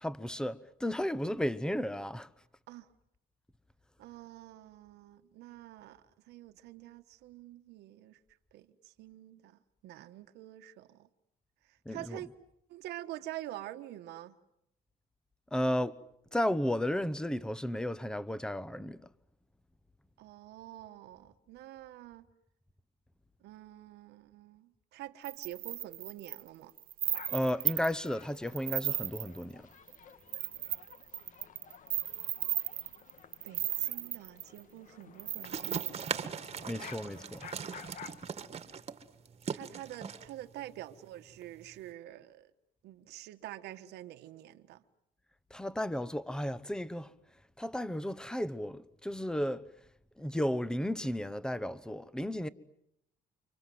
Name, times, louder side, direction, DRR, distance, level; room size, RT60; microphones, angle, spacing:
voice 1, 0.0-2.3 11.8-12.2 15.5-16.0 16.3-19.0 27.3-29.6 36.7-37.4 45.5-47.1 47.6-49.7 50.2-52.5, equal, 5° left, 1.0 m, -33 dB
voice 2, 4.0-8.2 8.5-11.1 11.7-12.3 12.7-14.4 20.2-22.2 23.4-26.7 33.4-36.4 39.5-42.5 42.8-44.8, right 14 dB, 80° right, 1.3 m, -47 dB
sound 1, 25.2-28.1 28.5-29.4 29.9-30.0 30.3-34.6 35.2-36.2, right 12 dB, 55° right, 1.1 m, -35 dB
sound 2, 27.0-38.3, left 7 dB, 50° left, 1.5 m, -53 dB
sound 3, 35.4-41.9, right 6 dB, 40° right, 1.8 m, -40 dB
29.5 x 25.5 x 7.8 m
cardioid pair, 110°, 17 cm